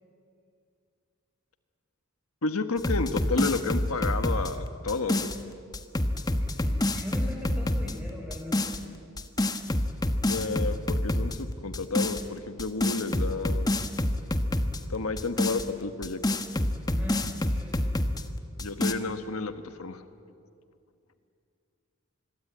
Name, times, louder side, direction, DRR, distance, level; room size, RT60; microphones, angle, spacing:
voice 1, 2.4-5.3 10.2-13.7 14.9-16.2 18.6-19.5 19.8-20.0, left 3 dB, 90° left, 9 dB, 1.4 m, -31 dB
sound 1, 2.8-5.4 5.7-7.9 8.3-8.8 9.2-11.4 11.7-12.2 12.6-14.8 15.2-18.2 18.6-18.9, left 1 dB, 20° left, 1.0 m, -27 dB
voice 2, 6.1-8.8 16.9-18.0, left 1 dB, 5° right, 0 dB, 5.8 m, -40 dB
26.5 x 22.0 x 9.3 m, 2.4 s
head